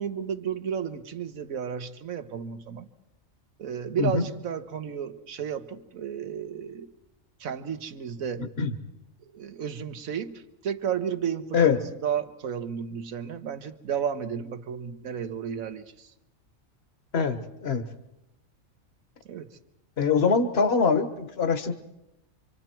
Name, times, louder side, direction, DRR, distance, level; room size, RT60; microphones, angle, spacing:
voice 1, 0.0-2.9 3.6-6.9 7.4-8.5 9.3-11.6 12.0-16.1 19.3-19.5, right 8 dB, 85° right, 10 dB, 1.5 m, -32 dB
voice 2, 17.1-17.8 20.0-21.7, left 5 dB, 50° left, 9 dB, 1.5 m, -23 dB
26.0 x 25.5 x 4.5 m, 0.88 s
omnidirectional pair, 1.4 m